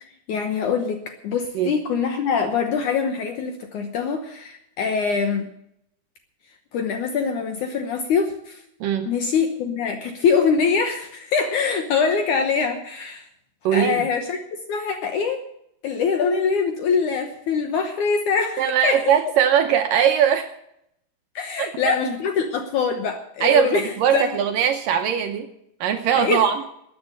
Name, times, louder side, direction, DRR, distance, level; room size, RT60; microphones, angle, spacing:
voice 1, 0.3-5.5 6.7-8.6 9.1-13.2 13.7-14.4 14.7-15.4 15.8-19.1 21.4-24.4 26.1-26.6, left 5 dB, 70° left, 6 dB, 2.0 m, -23 dB
voice 2, 13.7-14.0 18.6-20.5 21.6-22.0 23.4-25.5 25.8-26.6, right 9 dB, 75° right, 6 dB, 2.1 m, -20 dB
13.5 x 9.4 x 7.9 m, 0.76 s
omnidirectional pair, 4.7 m